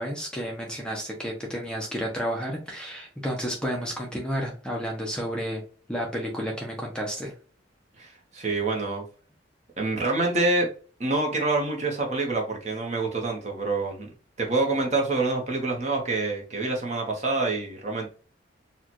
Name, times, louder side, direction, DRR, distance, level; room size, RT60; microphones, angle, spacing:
voice 1, 0.0-5.6 5.9-7.3, equal, 5° left, 0.7 m, -31 dB
voice 2, 8.0-9.0 9.8-10.7 11.0-14.1 14.4-18.1, right 2 dB, 35° right, 1.0 m, -26 dB
4.2 x 2.4 x 3.0 m
head